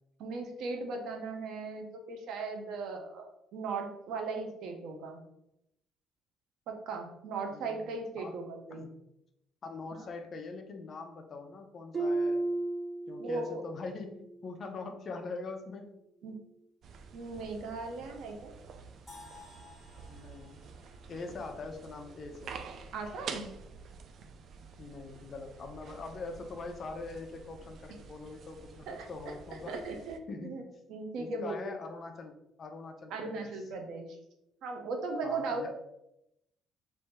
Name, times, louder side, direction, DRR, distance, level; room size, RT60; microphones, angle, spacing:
voice 1, 0.2-5.2 6.7-8.8 9.9-10.0 13.2-13.6 16.2-16.4 17.1-18.5 22.9-23.5 28.9-29.3 29.7-30.6 30.9-31.7 33.1-34.1 34.6-35.7, right 3 dB, 75° right, 4 dB, 0.8 m, -38 dB
voice 2, 7.5-8.3 8.7-8.9 9.6-12.5 13.1-16.0 20.1-20.6 21.1-22.6 24.8-29.7 30.3-30.8 31.2-33.6 35.2-35.7, left 3 dB, 40° left, 4 dB, 0.6 m, -43 dB
Harp, 11.9-13.7 14.1-14.5 15.0-15.1, right 2 dB, 20° right, 0.9 m, -33 dB
sound 1, 16.8-30.2, right 5 dB, 55° right, 0.4 m, -49 dB
sound 2, 19.1-23.0, left 2 dB, 5° left, 1.2 m, -56 dB
3.4 x 2.7 x 4.4 m, 0.82 s
cardioid pair, 140°, 0 cm